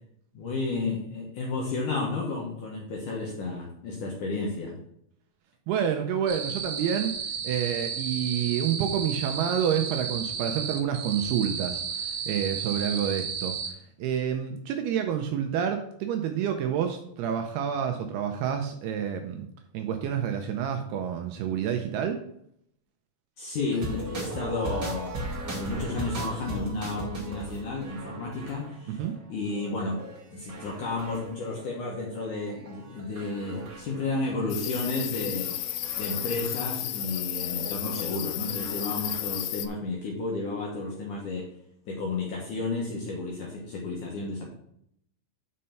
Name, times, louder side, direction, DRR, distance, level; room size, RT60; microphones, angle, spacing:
voice 1, 0.3-4.7 23.4-35.6 36.0-41.5 41.9-44.4, left 3 dB, 70° left, -2 dB, 2.0 m, -32 dB
voice 2, 5.7-7.1 7.4-13.6 14.0-19.5 19.7-22.2 28.9-29.2, right 8 dB, 85° right, 5 dB, 2.4 m, -28 dB
sound 1, 6.3-13.7, right 6 dB, 60° right, 2.4 m, -33 dB
sound 2, 23.7-39.4, right 1 dB, 40° right, 1.5 m, -39 dB
sound 3, 34.5-39.7, left 14 dB, 85° left, 2.3 m, -33 dB
6.4 x 5.6 x 5.6 m, 0.71 s
omnidirectional pair, 5.1 m